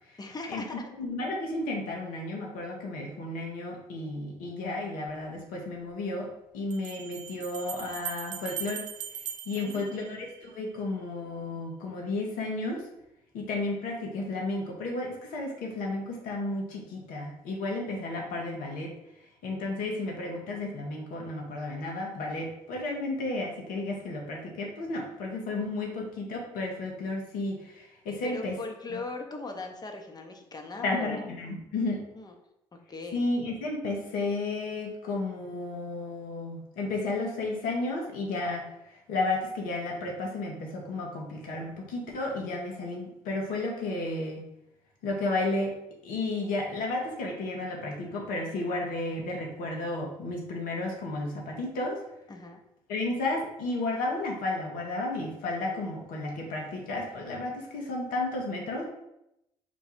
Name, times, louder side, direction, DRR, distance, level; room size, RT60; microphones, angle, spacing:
voice 1, 0.2-0.8 9.6-10.0 26.3-26.4 28.2-31.3 32.1-32.3 32.9-33.2 52.3-52.6, left 3 dB, 25° left, 3 dB, 0.8 m, -39 dB
voice 2, 0.9-6.3 6.5-8.8 9.5-12.8 13.3-18.9 19.4-28.5 28.9-29.0 30.8-32.0 33.1-38.6 38.9-44.4 45.0-45.7 46.0-52.0 52.9-58.8, left 2 dB, 75° left, 0 dB, 1.1 m, -32 dB
Bell, 5.1-5.2 6.7-10.6, right 8 dB, 55° right, 0.6 m, -40 dB
4.4 x 2.3 x 4.3 m, 0.84 s
hypercardioid pair, 55°, 15 cm